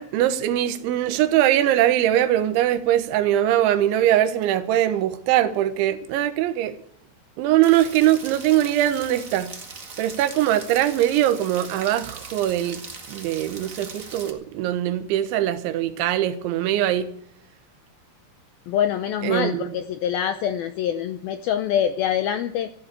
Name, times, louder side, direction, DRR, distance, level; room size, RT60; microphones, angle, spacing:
voice 1, 0.0-6.8 7.4-9.5 10.0-12.8 13.1-17.1 19.2-19.7, right 12 dB, 85° right, 3.4 m, -21 dB
Rain, 7.6-14.3, right 4 dB, 60° right, 0.8 m, -40 dB
voice 2, 18.7-22.7, left 9 dB, 80° left, 2.1 m, -25 dB
14.5 x 11.0 x 8.2 m
omnidirectional pair, 5.2 m